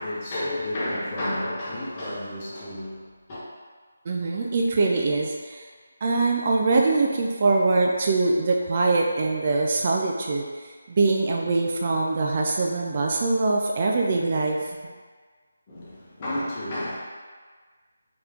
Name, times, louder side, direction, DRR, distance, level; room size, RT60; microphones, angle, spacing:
voice 1, 0.0-3.4 15.7-17.0, left 1 dB, 30° left, -8 dB, 1.0 m, -31 dB
voice 2, 4.1-5.7 6.0-10.4 10.9-14.7, right 3 dB, 40° right, -1 dB, 0.4 m, -23 dB
3.3 x 3.0 x 3.6 m, 1.5 s
figure-of-eight pair, 160°, 0 cm